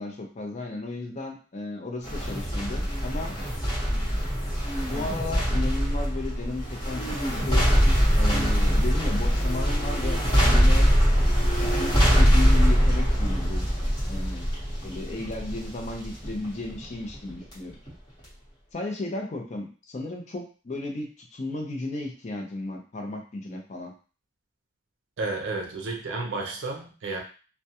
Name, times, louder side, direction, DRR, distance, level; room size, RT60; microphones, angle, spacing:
voice 1, 0.0-3.4 4.2-4.4 4.9-7.0 7.3-7.7 8.2-10.9 11.6-13.7 14.1-14.5 14.8-17.8 18.7-23.9, left 2 dB, 35° left, 1 dB, 0.4 m, -34 dB
sound 1, 2.0-17.5 17.9-18.0, equal, 20° left, 1.0 m, -23 dB
voice 2, 25.2-27.2, right 3 dB, 75° right, 1 dB, 0.5 m, -31 dB
2.3 x 2.1 x 2.7 m, 0.37 s
head